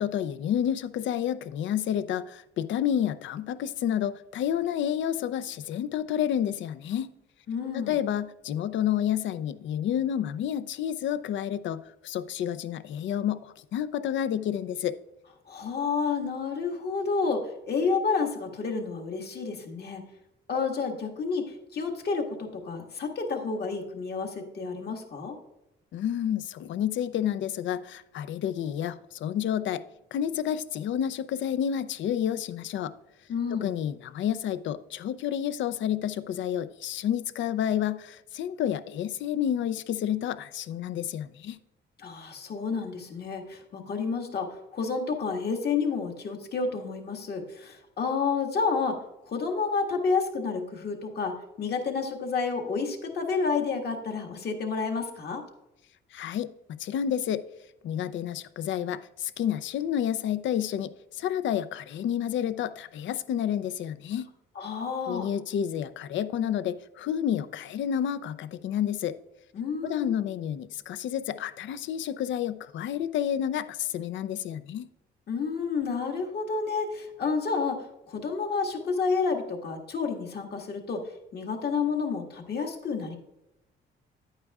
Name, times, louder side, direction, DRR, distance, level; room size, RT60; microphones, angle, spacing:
voice 1, 0.0-7.1 7.7-15.0 25.9-29.8 30.1-32.9 33.5-41.6 56.1-56.5 56.8-57.4 57.8-64.3 65.1-69.2 69.8-74.9, left 10 dB, 70° left, 13 dB, 0.5 m, -30 dB
voice 2, 7.5-8.0 15.5-20.0 20.5-25.3 33.3-33.7 42.0-55.4 64.5-65.3 69.5-70.1 75.3-77.8 78.1-81.0 81.3-83.2, left 5 dB, 55° left, 2 dB, 1.7 m, -30 dB
10.5 x 8.8 x 2.4 m, 0.90 s
cardioid pair, 90°, 20 cm